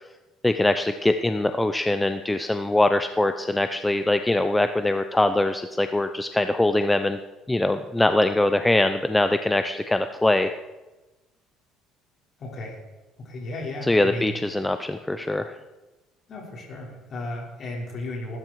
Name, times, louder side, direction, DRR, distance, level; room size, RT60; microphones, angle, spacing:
voice 1, 0.4-7.2 7.5-10.5 13.8-15.5, left 2 dB, 10° left, 9 dB, 0.6 m, -22 dB
voice 2, 12.4-12.8 13.2-14.3 16.3-18.4, left 2 dB, 40° left, -1 dB, 5.5 m, -34 dB
20.0 x 12.5 x 4.7 m, 1.1 s
cardioid pair, 120°, 0 cm